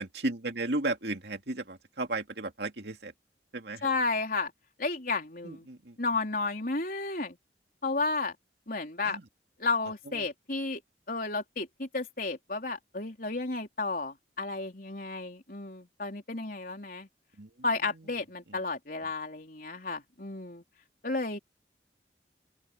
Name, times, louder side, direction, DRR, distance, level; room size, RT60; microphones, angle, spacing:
voice 1, 0.0-3.1 3.5-3.9 5.4-6.0 9.0-9.2 10.1-10.3 17.4-17.5 18.5-18.6, right 2 dB, 70° right, 2.4 m, -34 dB
voice 2, 3.8-4.5 4.8-5.7 6.0-7.4 7.8-8.3 8.7-9.2 9.6-10.8 11.1-17.1 17.6-20.6 21.0-21.4, left 3 dB, 50° left, 4.1 m, -32 dB
open air
head